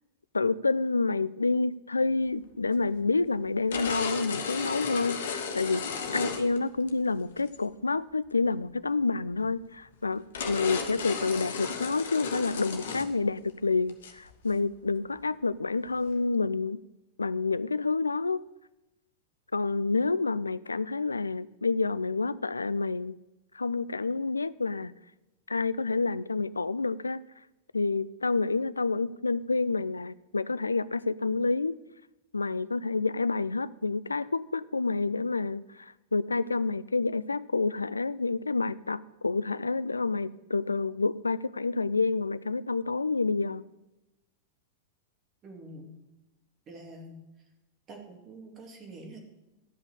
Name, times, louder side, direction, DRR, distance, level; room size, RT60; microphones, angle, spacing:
voice 1, 0.3-5.8 6.1-16.8 17.2-18.4 19.5-23.2 23.5-24.9 25.5-27.2 27.7-31.8 32.3-43.6, left 3 dB, 80° left, 0.3 m, -28 dB
sound 1, 2.6-2.7 3.7-6.9 7.4-7.6 9.4-9.5 9.9-10.0 10.3-13.1 13.4-13.5 13.9-14.5, left 5 dB, 60° left, 1.2 m, -34 dB
voice 2, 45.4-45.9 46.7-47.2 47.9-49.2, right 1 dB, 30° right, 2.6 m, -46 dB
12.5 x 5.6 x 8.2 m
figure-of-eight pair, 90°, 0 cm